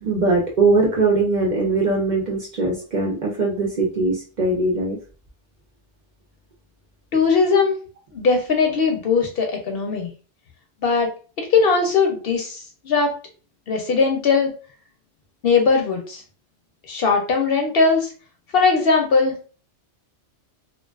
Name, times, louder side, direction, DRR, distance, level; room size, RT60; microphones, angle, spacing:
voice 1, 0.0-5.0, right 3 dB, 50° right, -2 dB, 0.6 m, -21 dB
voice 2, 7.1-7.8 8.1-10.1 10.8-11.1 11.4-13.1 13.7-14.5 15.4-16.2 16.9-18.1 18.5-19.4, left 4 dB, 65° left, 2 dB, 0.7 m, -19 dB
2.4 x 2.3 x 2.3 m, 0.37 s
omnidirectional pair, 1.2 m